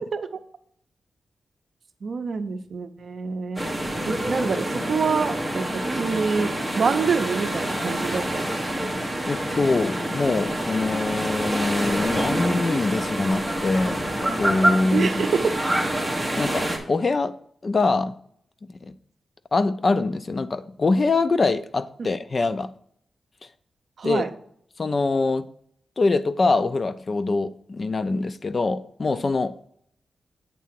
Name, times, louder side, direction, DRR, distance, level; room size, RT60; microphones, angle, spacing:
voice 1, 2.0-3.6 4.1-8.5 8.8-8.9 14.9-15.6 24.0-24.3, right 5 dB, 50° right, 0.6 m, -26 dB
sound 1, 3.6-16.8, right 1 dB, 5° left, 1.2 m, -27 dB
voice 2, 9.3-15.3 16.4-17.4 17.6-18.1 18.7-18.9 19.5-22.7 24.0-24.3 24.8-25.5 26.0-29.6, left 3 dB, 30° left, 0.3 m, -24 dB
8.3 x 3.7 x 5.9 m
wide cardioid pair, 175°, 0 cm